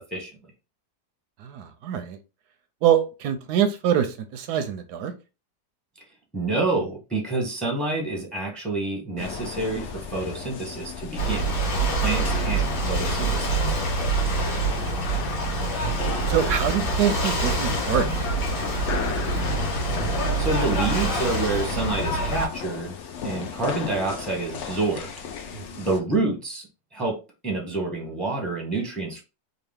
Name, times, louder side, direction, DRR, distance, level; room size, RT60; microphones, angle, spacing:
voice 1, 1.4-2.2 2.8-5.1 15.3-15.4 16.3-18.6 19.3-19.4 25.5-25.9, right 9 dB, 80° right, 1.1 m, -25 dB
voice 2, 6.3-11.6 11.9-14.1 20.4-23.0 23.2-25.1 25.8-27.2 27.4-29.2, right 3 dB, ahead, 0.8 m, -28 dB
sound 1, 9.2-26.0, left 6 dB, 65° left, 0.7 m, -35 dB
Ocean / Boat Water vehicle, 11.2-22.5, right 2 dB, 85° left, 2.0 m, -25 dB
3.9 x 2.3 x 3.4 m
omnidirectional pair, 1.7 m